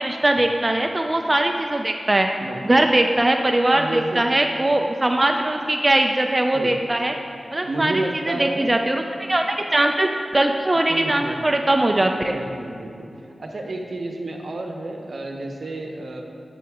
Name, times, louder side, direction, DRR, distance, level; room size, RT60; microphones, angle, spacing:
voice 1, 0.0-2.3 2.6-7.1 7.5-12.4, right 1 dB, 30° right, 4 dB, 0.5 m, -21 dB
voice 2, 2.4-2.8 3.7-4.3 6.5-6.7 7.6-8.7 10.9-11.5 12.2-13.1 13.4-16.2, right 2 dB, 70° right, 2 dB, 1.0 m, -31 dB
11.0 x 7.0 x 3.6 m, 2.5 s
cardioid pair, 45°, 0 cm